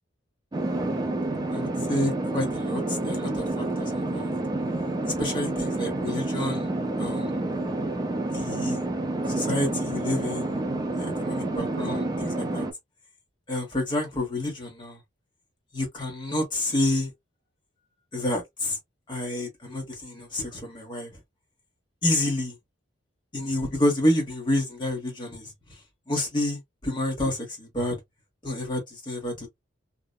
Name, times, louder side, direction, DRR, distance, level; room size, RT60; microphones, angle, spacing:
sound 1, 0.5-12.7, right 2 dB, 20° right, 0.3 m, -29 dB
voice 1, 1.5-4.3 5.1-6.7 7.0-7.3 8.3-8.8 9.3-10.6 11.0-12.6 13.5-15.0 15.7-17.1 18.1-18.8 19.1-21.1 22.0-22.6 23.3-25.5 26.1-28.0 28.4-29.5, left 1 dB, 25° left, 1.0 m, -29 dB
2.8 x 2.1 x 2.3 m
head